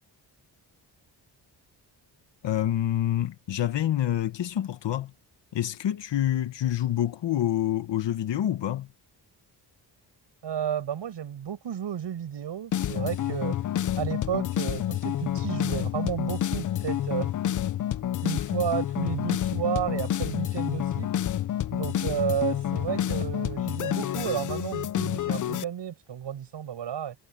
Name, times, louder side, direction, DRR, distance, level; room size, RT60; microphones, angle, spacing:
voice 1, 2.4-5.1 5.5-8.9, left 12 dB, 75° left, 1.4 m, -27 dB
voice 2, 10.4-13.6 13.9-17.3 18.2-21.1 21.7-27.2, right 9 dB, 75° right, 7.9 m, -32 dB
sound 1, 12.7-25.6, left 11 dB, 45° left, 0.5 m, -29 dB
wide cardioid pair, 145°, 43 cm